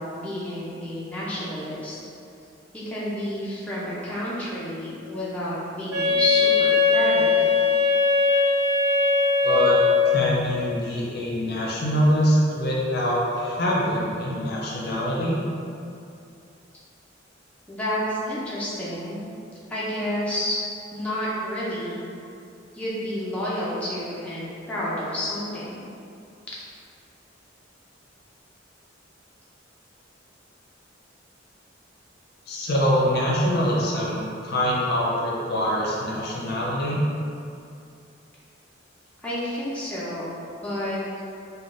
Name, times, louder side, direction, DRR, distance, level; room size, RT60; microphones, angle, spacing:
voice 1, 0.0-2.0 2.7-7.5 17.7-19.2 19.7-20.6 20.9-22.0 22.7-25.9 39.2-40.3 40.6-41.0, left 1 dB, 5° left, -9 dB, 0.4 m, -30 dB
Wind instrument woodwind instrument, 5.9-10.4, left 4 dB, 75° right, 1.1 m, -20 dB
voice 2, 9.4-9.8 10.1-15.4 32.5-37.0, equal, 55° left, -4 dB, 0.5 m, -24 dB
3.4 x 2.2 x 2.4 m, 2.5 s
head